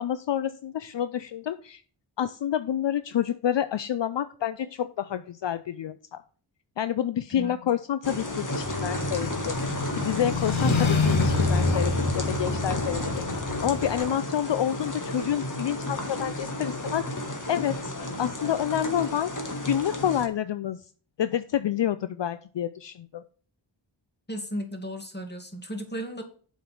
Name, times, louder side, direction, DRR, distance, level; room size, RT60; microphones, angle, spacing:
voice 1, 0.0-1.8 2.2-6.2 6.8-9.6 10.0-13.3 13.6-19.3 19.6-20.9 21.2-23.2, left 10 dB, 65° left, 13 dB, 0.5 m, -28 dB
sound 1, 8.0-20.3, left 1 dB, 40° left, 1.9 m, -31 dB
sound 2, 8.6-14.1, left 4 dB, 85° left, 1.5 m, -28 dB
voice 2, 24.3-26.2, equal, 20° left, 4 dB, 2.3 m, -35 dB
7.5 x 5.3 x 5.9 m, 0.42 s
wide cardioid pair, 55°, 47 cm